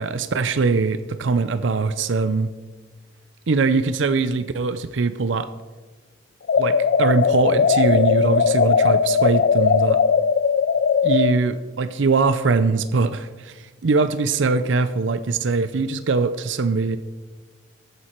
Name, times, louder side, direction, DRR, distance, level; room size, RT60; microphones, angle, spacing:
voice 1, 0.0-2.5 3.5-5.5 6.6-10.0 11.0-17.0, right 4 dB, 75° right, 12 dB, 0.5 m, -22 dB
sound 1, 6.5-11.4, left 6 dB, 55° left, 0.4 m, -18 dB
14.0 x 8.9 x 4.5 m, 1.3 s
head